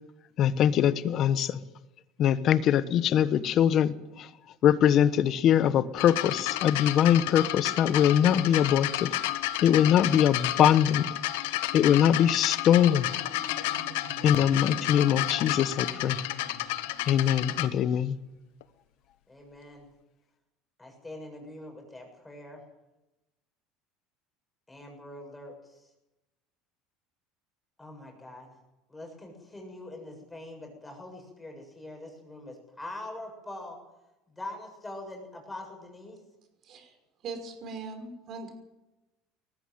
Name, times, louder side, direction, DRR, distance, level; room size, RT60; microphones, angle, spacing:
voice 1, 0.4-1.6 2.2-4.3 4.6-9.1 9.6-11.1 11.7-13.1 14.2-16.2 17.1-18.1, left 10 dB, 45° left, 14 dB, 1.2 m, -22 dB
sound 1, 6.0-17.7 18.6-18.7, left 15 dB, 90° left, 1.2 m, -31 dB
Marimba xylophone, 12.9-18.1, right 2 dB, 70° right, 6.6 m, -47 dB
voice 2, 19.3-19.9 20.8-22.6 24.7-25.8 27.8-28.5 28.9-33.8 34.3-36.2, left 1 dB, 10° left, 2 dB, 7.1 m, -43 dB
voice 3, 36.6-36.9 37.2-38.5, right 4 dB, 45° right, 6 dB, 5.7 m, -40 dB
19.5 x 14.5 x 9.4 m, 0.98 s
supercardioid pair, 125°, 0 cm